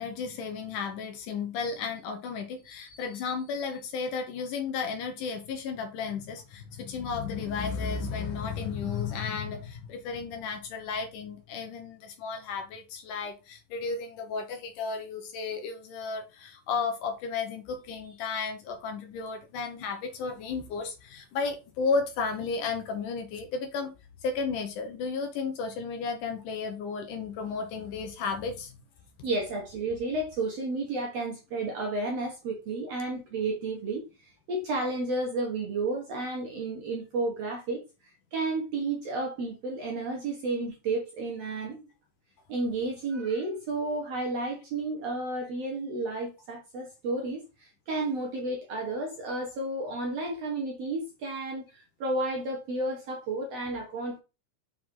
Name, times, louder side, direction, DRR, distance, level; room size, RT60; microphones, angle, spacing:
voice 1, 0.0-23.9 24.2-28.8, left 5 dB, 70° left, 2.2 m, -33 dB
voice 2, 29.2-37.8 38.3-41.9 42.5-54.2, right 2 dB, 60° right, 1.9 m, -32 dB
6.3 x 4.5 x 3.7 m
omnidirectional pair, 4.2 m